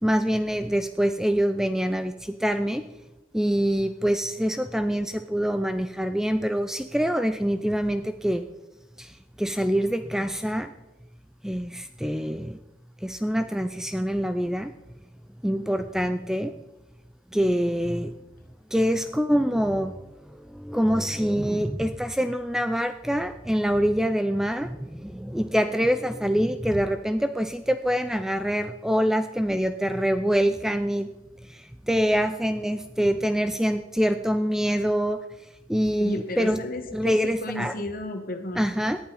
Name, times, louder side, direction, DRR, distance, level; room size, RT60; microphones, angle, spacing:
voice 1, 0.0-2.8 3.3-8.4 9.0-10.7 11.4-12.6 13.0-14.7 15.4-16.5 17.3-18.1 18.7-31.1 31.4-35.2 35.7-36.6 36.9-37.7 38.6-39.0, equal, ahead, 9 dB, 0.4 m, -25 dB
voice 2, 36.0-38.6, left 1 dB, 45° left, 6 dB, 1.6 m, -33 dB
18.5 x 11.5 x 4.2 m, 1.1 s
head